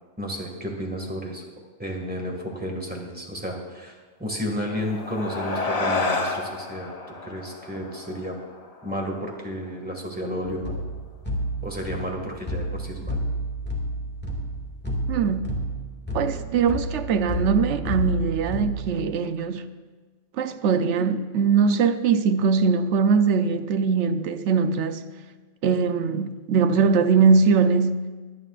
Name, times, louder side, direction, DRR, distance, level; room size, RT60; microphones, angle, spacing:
voice 1, 0.2-1.4 1.8-6.9 7.2-8.4 8.8-10.8 11.6-13.2, equal, 5° right, 1.8 m, -32 dB
sound 1, 4.6-9.4, left 3 dB, 35° left, 1.0 m, -30 dB
sound 2, 10.4-18.9, right 1 dB, 10° left, 2.1 m, -30 dB
voice 2, 15.1-15.5 16.1-19.7 20.4-25.0 25.6-28.1, right 5 dB, 70° right, 0.9 m, -21 dB
23.0 x 9.7 x 2.5 m
omnidirectional pair, 1.3 m